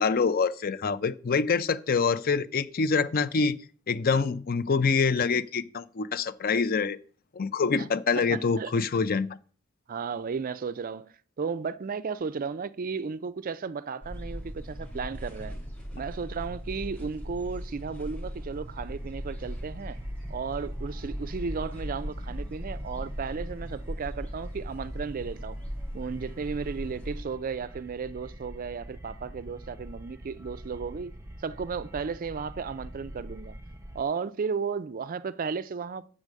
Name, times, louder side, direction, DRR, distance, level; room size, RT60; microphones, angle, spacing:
voice 1, 0.0-3.6 3.9-7.0 7.3-9.4, left 5 dB, 45° left, 0.5 m, -26 dB
voice 2, 8.2-8.7 9.9-15.5 15.9-20.0 20.3-25.6 25.9-31.1 31.4-33.6 33.9-36.1, right 5 dB, 40° right, 0.4 m, -34 dB
sound 1, 14.0-27.2, equal, 5° left, 2.4 m, -38 dB
sound 2, 18.7-34.0, right 1 dB, 15° right, 0.8 m, -46 dB
7.4 x 4.8 x 6.4 m
head